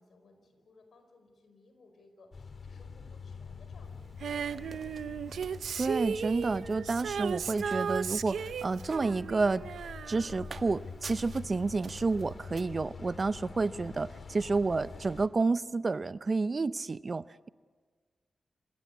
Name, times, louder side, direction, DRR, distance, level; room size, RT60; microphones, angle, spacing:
voice 1, 0.0-5.4, left 3 dB, 75° left, 6 dB, 4.8 m, -60 dB
sound 1, 2.3-15.3, left 5 dB, 55° left, 1.9 m, -46 dB
sound 2, 3.8-12.6, right 5 dB, 65° right, 1.4 m, -52 dB
Female singing, 4.2-11.2 12.3-12.4, right 7 dB, 90° right, 0.6 m, -36 dB
voice 2, 5.8-9.6 10.1-17.5, right 3 dB, 45° right, 16 dB, 0.6 m, -30 dB
27.0 x 16.0 x 8.4 m, 1.5 s
cardioid pair, 65°, 0 cm